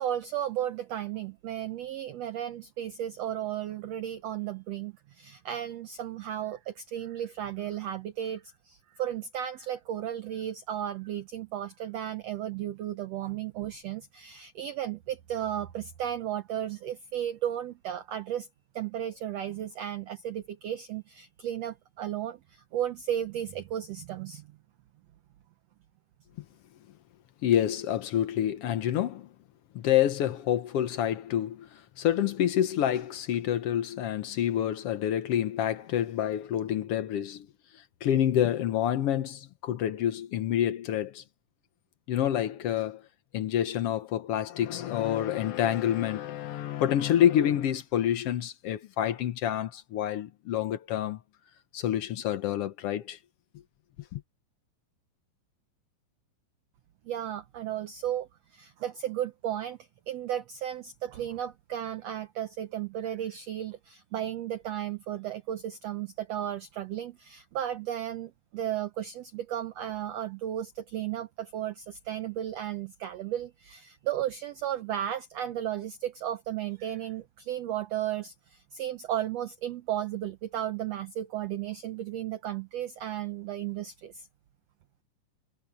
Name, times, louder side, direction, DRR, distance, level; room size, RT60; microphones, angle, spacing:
voice 1, 0.0-18.5 18.7-24.5 57.0-59.8 60.1-84.3, right 11 dB, 90° right, 1.4 m, -34 dB
voice 2, 27.4-29.3 29.7-37.5 37.7-41.2 42.1-43.0 43.3-51.2 51.7-53.2 54.1-54.2, left 11 dB, 85° left, 1.3 m, -28 dB
omnidirectional pair, 4.1 m